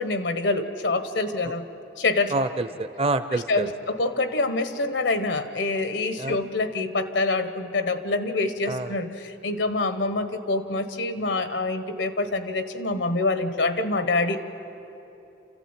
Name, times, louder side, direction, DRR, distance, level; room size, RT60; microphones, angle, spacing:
voice 1, 0.0-1.7 2.0-2.3 3.3-14.4, left 3 dB, 85° left, 10 dB, 1.4 m, -26 dB
voice 2, 2.3-3.7 6.2-6.4 8.7-8.9, right 2 dB, 30° right, 11 dB, 0.6 m, -27 dB
27.5 x 14.5 x 9.0 m, 3.0 s
head